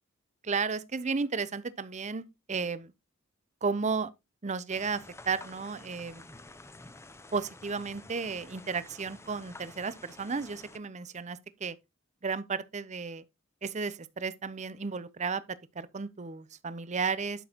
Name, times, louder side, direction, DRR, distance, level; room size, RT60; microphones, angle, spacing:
voice 1, 0.4-2.9 3.6-4.1 4.4-6.2 7.3-11.8 12.2-13.2 13.6-17.4, right 5 dB, 35° right, 0.6 m, -33 dB
sound 1, 4.7-10.8, left 2 dB, 15° left, 0.8 m, -50 dB
11.5 x 6.2 x 2.9 m
head